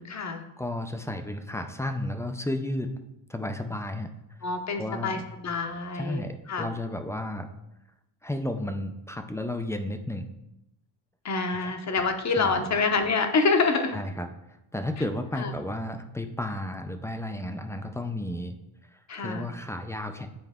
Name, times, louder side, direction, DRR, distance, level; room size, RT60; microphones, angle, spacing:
voice 1, 0.0-0.4 4.4-6.7 11.2-14.0 15.3-15.5 19.1-19.5, left 4 dB, 35° left, 6 dB, 0.8 m, -27 dB
voice 2, 0.6-2.9 3.3-4.1 4.8-5.2 5.9-7.5 8.2-10.3 11.6-11.7 12.4-12.6 13.9-14.3 14.7-18.5 18.9-20.3, left 1 dB, 5° left, 6 dB, 0.3 m, -33 dB
7.8 x 4.5 x 3.6 m, 0.89 s
cardioid pair, 120°, 46 cm